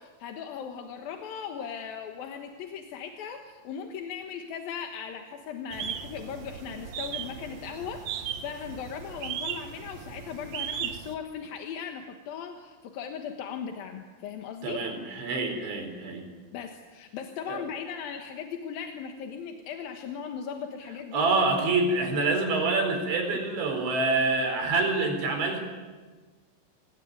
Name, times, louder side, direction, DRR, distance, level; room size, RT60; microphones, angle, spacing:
voice 1, 0.0-14.8 16.5-21.3 21.6-21.7, left 7 dB, 65° left, 4 dB, 2.8 m, -38 dB
sound 1, 5.7-11.1, right 9 dB, 90° right, 1.5 m, -37 dB
voice 2, 14.6-16.3 17.5-17.6 21.1-25.6, right 3 dB, 75° right, 4 dB, 6.7 m, -26 dB
26.0 x 20.0 x 9.4 m, 1.4 s
omnidirectional pair, 5.3 m